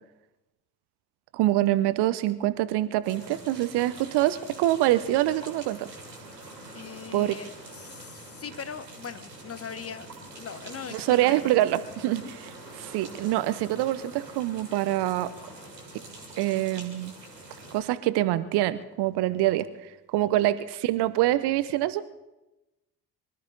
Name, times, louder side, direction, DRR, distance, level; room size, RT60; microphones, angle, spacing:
voice 1, 1.3-5.9 7.1-7.3 10.9-15.3 16.4-17.1 17.7-22.0, right 15 dB, 55° right, 15 dB, 0.8 m, -25 dB
sound 1, 3.0-17.8, right 2 dB, 90° right, 2.4 m, -45 dB
voice 2, 6.7-7.5 7.7-11.6 12.2-12.3 20.2-20.5, left 6 dB, 30° left, 13 dB, 1.0 m, -40 dB
24.0 x 13.0 x 4.0 m, 0.98 s
figure-of-eight pair, 45°, 47 cm